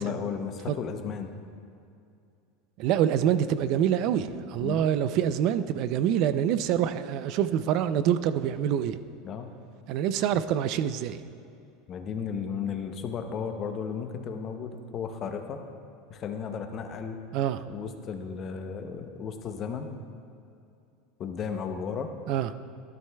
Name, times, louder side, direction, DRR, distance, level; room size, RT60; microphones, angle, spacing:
voice 1, 0.0-1.3 4.6-4.9 9.2-9.5 11.9-15.6 16.1-17.2 17.7-19.9 21.2-22.1, left 6 dB, 30° left, 6 dB, 0.6 m, -34 dB
voice 2, 2.8-9.0 9.9-11.2 17.3-17.6 22.3-22.5, right 10 dB, 45° right, 13 dB, 0.3 m, -26 dB
12.5 x 12.0 x 2.2 m, 2.5 s
supercardioid pair, 165°, 0 cm